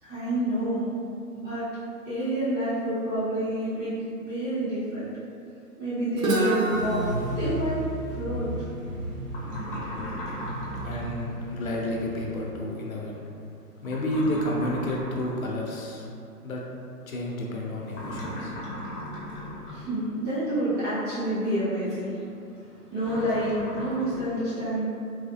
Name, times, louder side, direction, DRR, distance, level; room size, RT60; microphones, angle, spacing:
voice 1, 0.0-0.9 1.4-1.7 2.0-5.1 5.8-7.0 7.3-7.8 8.1-8.5 19.7-22.2 22.6-24.8, right 1 dB, 10° right, -15 dB, 0.8 m, -28 dB
Guitar, 6.2-10.0, right 2 dB, 60° right, 0.7 m, -30 dB
sound 1, 6.7-12.5, right 1 dB, 30° right, 0.4 m, -35 dB
sound 2, 9.3-11.1 13.8-15.5 17.9-19.9 23.0-24.2, left 1 dB, 35° left, 0.8 m, -37 dB
voice 2, 10.8-13.2 13.8-16.1 16.4-16.6 17.1-18.5, left 1 dB, 65° left, -2 dB, 0.8 m, -30 dB
4.0 x 2.2 x 2.9 m, 2.6 s
figure-of-eight pair, 135°, 46 cm